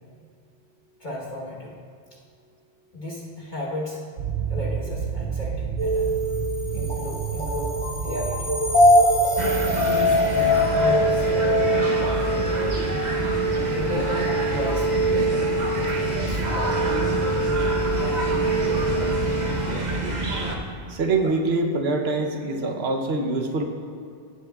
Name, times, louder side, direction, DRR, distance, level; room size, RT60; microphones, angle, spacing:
voice 1, 1.0-1.7 2.9-4.0 4.5-6.1 6.7-8.6 9.9-12.6 13.7-16.9 21.2-21.3, left 1 dB, 45° left, -6 dB, 1.5 m, -34 dB
sound 1, 4.2-19.0, right 7 dB, 90° right, 1.0 m, -34 dB
sound 2, 5.8-19.7, equal, 70° left, 3.0 m, -23 dB
sound 3, 9.4-20.6, right 2 dB, 40° right, 1.1 m, -27 dB
voice 2, 20.9-23.6, right 3 dB, 65° right, 3 dB, 1.2 m, -24 dB
16.5 x 8.1 x 2.4 m, 2.3 s
omnidirectional pair, 1.2 m